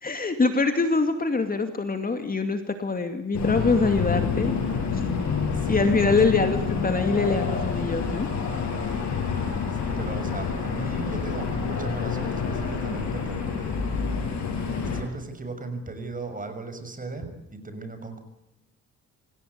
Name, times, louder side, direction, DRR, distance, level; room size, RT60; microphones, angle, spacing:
voice 1, 0.0-4.5 5.7-8.3, left 3 dB, 30° left, 7 dB, 2.5 m, -24 dB
sound 1, 3.3-15.0, left 5 dB, 65° left, 6.4 m, -28 dB
voice 2, 5.5-6.2 9.8-13.7 14.7-18.2, right 3 dB, 25° right, 8 dB, 6.3 m, -36 dB
26.5 x 17.0 x 9.6 m, 0.88 s
cardioid pair, 90°, 30 cm